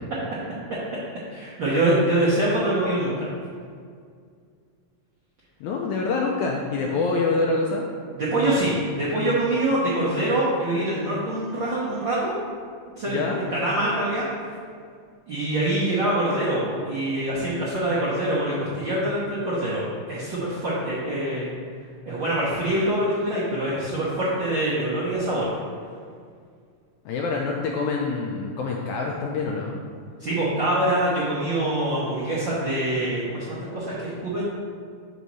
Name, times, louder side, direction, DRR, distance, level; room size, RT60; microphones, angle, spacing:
voice 1, 1.3-3.3 8.1-12.4 13.0-14.3 15.3-21.5 22.0-25.5 30.2-34.4, right 1 dB, 70° right, -9 dB, 1.1 m, -24 dB
voice 2, 5.6-7.8 13.1-13.4 27.1-29.8, left 3 dB, 80° left, 0 dB, 1.8 m, -26 dB
5.5 x 4.1 x 6.1 m, 2.1 s
omnidirectional pair, 3.9 m